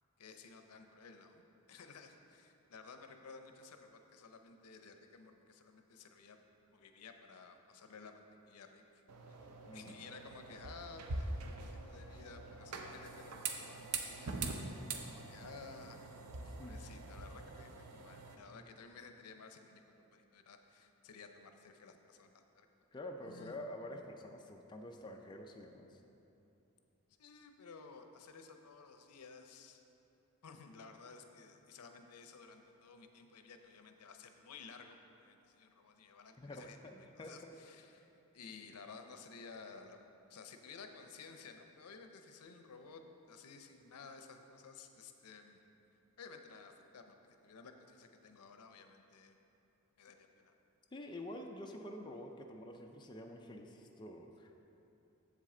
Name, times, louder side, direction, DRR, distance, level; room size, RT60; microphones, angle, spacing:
voice 1, 0.2-1.4 1.7-6.4 6.7-9.0 9.3-9.5 9.7-14.7 15.0-16.2 16.6-22.7 23.2-23.5 27.2-29.8 30.4-36.8 37.1-43.0 43.3-45.6 46.2-47.2 47.4-49.4 50.0-50.5, left 4 dB, 85° left, 6 dB, 0.6 m, -55 dB
sound 1, 9.1-18.4, right 3 dB, 90° right, 0.6 m, -44 dB
voice 2, 9.7-10.0 16.4-16.8 22.9-26.0 36.4-37.5 50.9-54.6, left 1 dB, 20° left, 2 dB, 0.4 m, -48 dB
7.4 x 7.4 x 3.7 m, 2.9 s
head